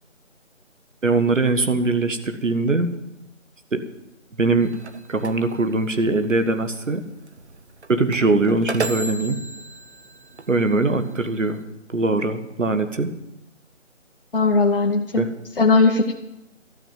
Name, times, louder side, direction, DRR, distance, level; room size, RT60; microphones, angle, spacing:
voice 1, 1.0-2.9 3.7-3.8 4.4-4.7 5.1-7.0 7.9-9.4 10.5-11.6 11.9-13.1 15.1-15.3, right 3 dB, 80° right, 8 dB, 1.7 m, -21 dB
sound 1, 4.6-11.6, right 3 dB, 60° right, 1.0 m, -35 dB
voice 2, 14.3-15.3 15.6-16.1, left 3 dB, 45° left, 1 dB, 0.9 m, -18 dB
13.0 x 7.4 x 9.2 m, 0.90 s
figure-of-eight pair, 175°, 38 cm